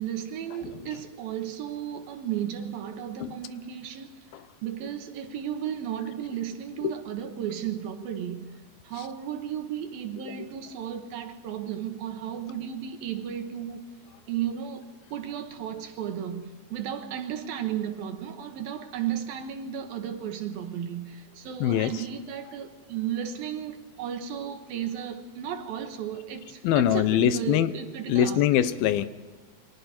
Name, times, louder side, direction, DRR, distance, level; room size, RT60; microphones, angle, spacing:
voice 1, 0.0-4.2 4.6-13.8 14.3-28.4, right 9 dB, 80° right, 3.3 m, -34 dB
voice 2, 21.6-21.9 26.6-27.7 28.1-29.1, left 11 dB, 85° left, 2.7 m, -22 dB
28.5 x 24.0 x 4.4 m
omnidirectional pair, 4.1 m